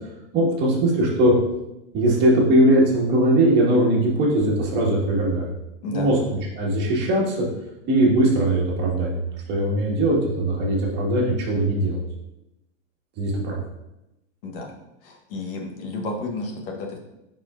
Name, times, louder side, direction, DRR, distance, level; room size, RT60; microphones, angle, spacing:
voice 1, 0.3-1.3 1.9-5.5 5.9-6.1 6.6-7.5 7.9-12.0 13.2-13.6, right 1 dB, 30° right, -3 dB, 1.7 m, -20 dB
voice 2, 5.8-6.1 14.4-14.7 15.0-17.0, left 2 dB, 50° left, 1 dB, 1.2 m, -31 dB
8.7 x 4.4 x 2.5 m, 0.92 s
supercardioid pair, 155°, 35 cm